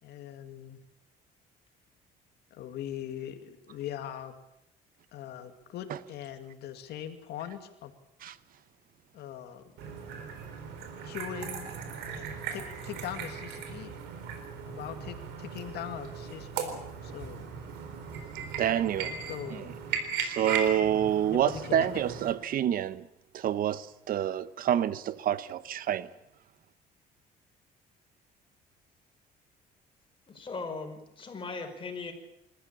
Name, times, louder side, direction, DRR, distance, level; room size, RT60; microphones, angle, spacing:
voice 1, 0.0-0.8 2.5-4.3 5.1-7.9 9.1-9.7 11.0-11.7 12.0-14.0 14.7-17.4 19.3-19.7 20.4-20.5 21.3-21.9, left 10 dB, 75° left, 2.4 m, -41 dB
sound 1, 9.8-22.3, right 6 dB, 85° right, 4.1 m, -38 dB
voice 2, 18.6-19.2 19.5-19.6 20.2-23.1 23.3-26.1, right 10 dB, 60° right, 0.9 m, -28 dB
voice 3, 30.3-32.1, left 4 dB, 30° left, 5.1 m, -38 dB
26.5 x 14.5 x 8.8 m
cardioid pair, 110°, 17 cm